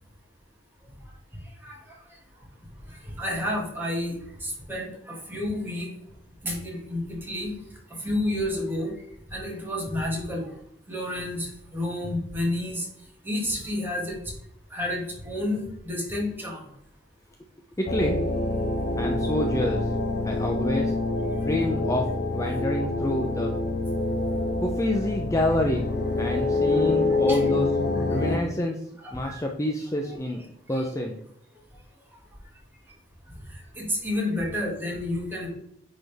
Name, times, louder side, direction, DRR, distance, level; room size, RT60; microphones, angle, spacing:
voice 1, 1.6-2.0 2.9-4.1 4.4-5.9 6.4-7.5 8.0-8.9 9.3-10.5 10.9-12.9 13.2-14.2 14.7-16.6 26.7-26.9 27.3-27.5 28.0-28.1 29.0-29.4 30.0-30.5 30.7-30.9 33.8-35.5, left 1 dB, 10° right, -2 dB, 2.0 m, -30 dB
voice 2, 17.8-18.2 19.0-19.9 20.2-20.9 21.4-23.6 24.6-27.7 28.1-28.8 29.1-30.4 30.7-31.2, left 1 dB, 15° left, 1 dB, 0.6 m, -27 dB
sound 1, 17.9-28.4, left 2 dB, 60° left, 0.8 m, -26 dB
9.1 x 3.8 x 3.5 m, 0.72 s
head